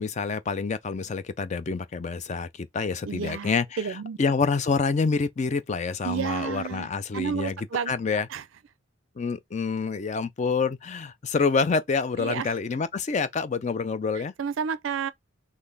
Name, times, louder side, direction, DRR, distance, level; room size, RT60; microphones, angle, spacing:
voice 1, 0.0-3.7 4.2-7.6 7.9-8.3 9.2-14.3, left 4 dB, 35° left, 0.3 m, -27 dB
voice 2, 3.0-3.5 3.8-4.2 6.0-8.4 12.2-12.5 14.1-15.1, right 7 dB, 65° right, 0.4 m, -31 dB
3.9 x 3.1 x 4.0 m
head